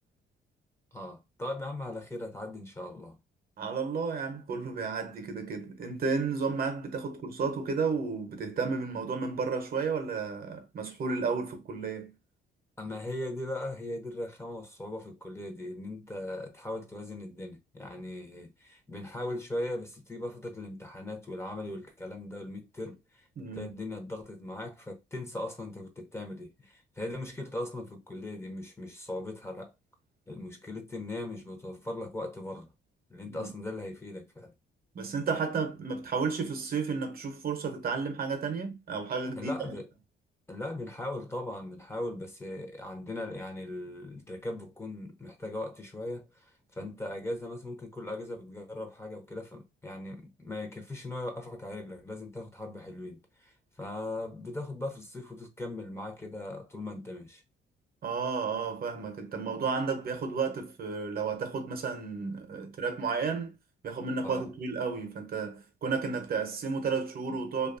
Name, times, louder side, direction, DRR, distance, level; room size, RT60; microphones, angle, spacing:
voice 1, 0.9-3.2 12.8-23.3 23.5-29.7 30.3-32.7 33.1-34.5 39.4-39.9 40.5-57.4 64.2-64.5, left 1 dB, 15° left, 0.7 m, -39 dB
voice 2, 3.6-12.1 23.4-23.7 33.2-33.5 34.9-39.7 46.8-46.9 58.0-63.6 63.8-67.8, right 5 dB, 50° right, 0.7 m, -32 dB
2.6 x 2.3 x 2.5 m
cardioid pair, 90°, 20 cm